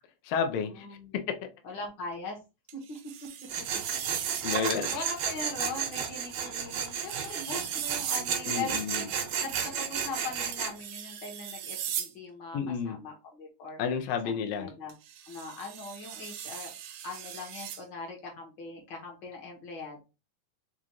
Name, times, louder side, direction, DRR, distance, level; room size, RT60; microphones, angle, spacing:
voice 1, 0.2-0.9 1.1-1.4 4.4-5.0 8.5-9.1 12.5-13.0 13.8-14.7, left 6 dB, 80° left, 1.4 m, -31 dB
voice 2, 0.8-1.1 1.6-2.4 2.7-3.0 4.2-4.5 4.9-8.7 9.4-12.6 12.8-13.8 14.2-14.9 15.3-16.7 17.0-20.0, left 3 dB, 55° left, 1.3 m, -40 dB
sound 1, 2.7-4.5 6.7-8.3 10.5-12.1 14.9-17.8, right 10 dB, 90° right, 2.0 m, -38 dB
Tools, 3.5-10.7, right 7 dB, 70° right, 1.8 m, -33 dB
5.0 x 2.4 x 2.8 m
omnidirectional pair, 3.3 m